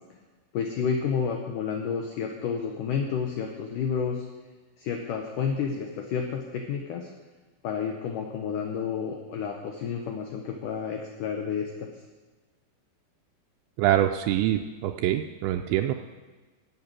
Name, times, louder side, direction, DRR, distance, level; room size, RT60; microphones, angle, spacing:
voice 1, 0.5-4.2 4.8-7.1 7.6-11.9, left 6 dB, 90° left, 3 dB, 1.8 m, -30 dB
voice 2, 13.8-15.9, right 12 dB, 85° right, 5 dB, 2.8 m, -25 dB
11.5 x 6.5 x 8.8 m, 1.3 s
omnidirectional pair, 5.0 m